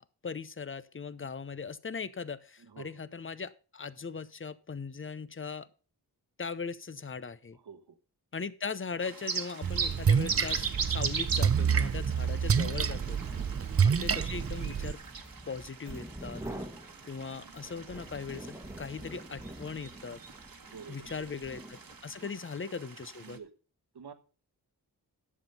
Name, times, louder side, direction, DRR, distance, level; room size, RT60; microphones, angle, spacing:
voice 1, 0.2-5.7 6.4-7.6 8.3-13.2 13.8-15.0 15.5-16.4 17.1-20.2 20.9-23.4, left 5 dB, 30° left, 16 dB, 0.7 m, -39 dB
voice 2, 2.6-2.9 7.5-8.0 13.3-13.5 20.7-21.1 22.2-22.3 23.2-23.5 23.9-24.1, right 6 dB, 75° right, 8 dB, 1.4 m, -48 dB
sound 1, 9.0-23.4, right 5 dB, 60° right, 1.4 m, -40 dB
Splash splatter, 9.6-14.9, right 7 dB, 35° right, 0.6 m, -28 dB
sound 2, 12.3-22.2, right 1 dB, 5° right, 1.3 m, -46 dB
11.0 x 7.2 x 5.6 m, 0.38 s
wide cardioid pair, 75°, 40 cm